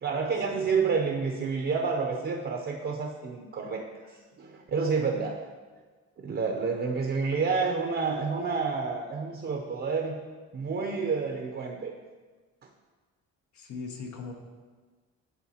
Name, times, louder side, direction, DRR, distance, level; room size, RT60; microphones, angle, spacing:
voice 1, 0.0-3.9 4.4-5.4 6.2-10.2 10.5-11.9, right 5 dB, 40° right, 2 dB, 0.6 m, -29 dB
voice 2, 13.5-14.3, left 4 dB, 75° left, 3 dB, 1.1 m, -39 dB
11.0 x 3.8 x 2.8 m, 1.4 s
cardioid pair, 90°, 30 cm